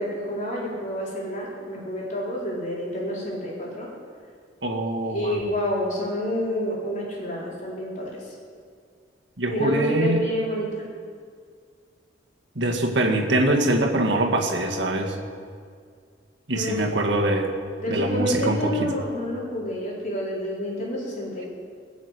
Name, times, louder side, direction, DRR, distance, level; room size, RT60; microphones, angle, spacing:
voice 1, 0.0-3.9 5.0-8.2 9.5-10.8 16.5-16.8 17.8-21.5, equal, 45° left, -5 dB, 4.5 m, -28 dB
voice 2, 4.6-5.4 9.4-10.3 12.6-15.2 16.5-17.5 17.9-18.9, right 1 dB, 75° right, 1 dB, 1.9 m, -23 dB
21.0 x 7.3 x 8.3 m, 2.1 s
head